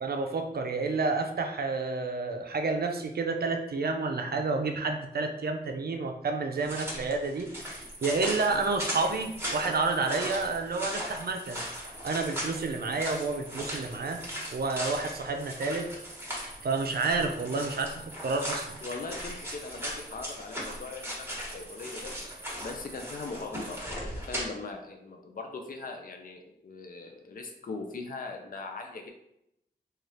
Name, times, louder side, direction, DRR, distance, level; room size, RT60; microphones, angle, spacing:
voice 1, 0.0-7.5 8.0-11.7 12.0-14.2 14.5-15.9 16.6-18.8, right 3 dB, 65° right, 5 dB, 0.5 m, -30 dB
sound 1, 6.6-24.4, equal, 15° right, 1.2 m, -38 dB
sound 2, 7.6-23.8, right 1 dB, 40° right, 0.9 m, -50 dB
voice 2, 18.8-22.2 22.6-29.1, left 3 dB, 55° left, 4 dB, 0.5 m, -40 dB
3.2 x 2.4 x 4.1 m, 0.78 s
wide cardioid pair, 105°, 17 cm